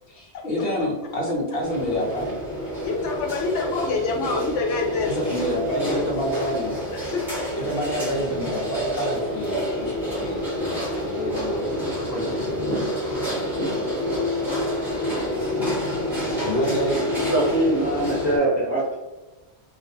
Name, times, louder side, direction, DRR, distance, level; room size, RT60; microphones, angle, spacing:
voice 1, 0.1-2.3 5.1-6.8 7.6-12.7 14.4-14.5 16.4-17.0, equal, 60° left, -2 dB, 0.9 m, -28 dB
sound 1, 1.6-18.4, left 1 dB, ahead, 0.9 m, -28 dB
voice 2, 2.8-5.1 6.9-7.5 9.7-10.2 15.1-15.2, left 4 dB, 90° left, 1 dB, 0.9 m, -27 dB
voice 3, 17.1-18.9, right 1 dB, 20° right, -7 dB, 0.5 m, -22 dB
2.5 x 2.2 x 2.6 m, 1.1 s
omnidirectional pair, 1.2 m